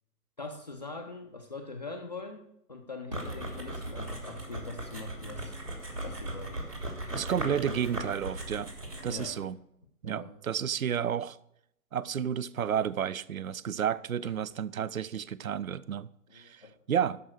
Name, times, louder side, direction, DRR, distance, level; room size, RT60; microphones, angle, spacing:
voice 1, 0.4-5.5 6.0-6.6 9.1-9.4 10.0-10.3 16.3-16.7, left 3 dB, 30° left, 0.6 m, -42 dB
sound 1, 3.1-9.4, right 1 dB, 80° right, 3.2 m, -38 dB
voice 2, 7.1-8.7 9.0-9.6 10.0-11.4 11.9-17.2, right 8 dB, 60° right, 0.5 m, -31 dB
12.5 x 5.4 x 6.3 m
figure-of-eight pair, 135°, 47 cm